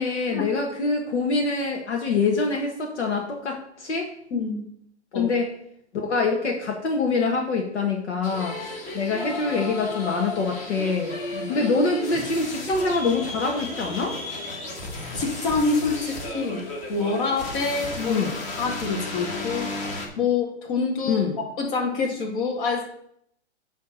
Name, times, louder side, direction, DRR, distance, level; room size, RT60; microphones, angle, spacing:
voice 1, 0.0-4.1 5.1-5.5 5.9-11.1 11.5-14.2 18.1-18.3 21.1-21.4, left 4 dB, 70° left, 1 dB, 1.6 m, -25 dB
voice 2, 4.3-4.7 5.1-5.3 11.3-11.5 15.1-16.6 16.9-19.7 20.2-21.3 21.6-22.9, left 4 dB, 45° left, 0 dB, 2.2 m, -26 dB
sound 1, 8.2-20.1, left 2 dB, 20° left, 1.4 m, -34 dB
9.4 x 3.4 x 6.5 m, 0.71 s
hypercardioid pair, 145°, 35 cm